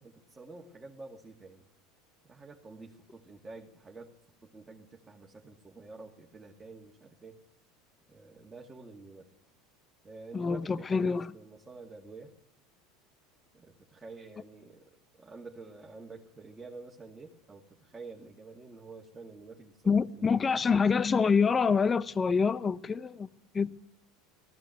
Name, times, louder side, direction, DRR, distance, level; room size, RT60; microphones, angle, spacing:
voice 1, 0.0-1.7 2.3-4.2 4.4-7.4 8.1-9.3 10.0-12.3 13.5-20.7, right 3 dB, 15° right, 2.4 m, -49 dB
voice 2, 10.3-11.3 19.9-23.3 23.5-23.9, left 5 dB, 25° left, 0.8 m, -26 dB
19.0 x 15.0 x 9.4 m
supercardioid pair, 110°, 0 cm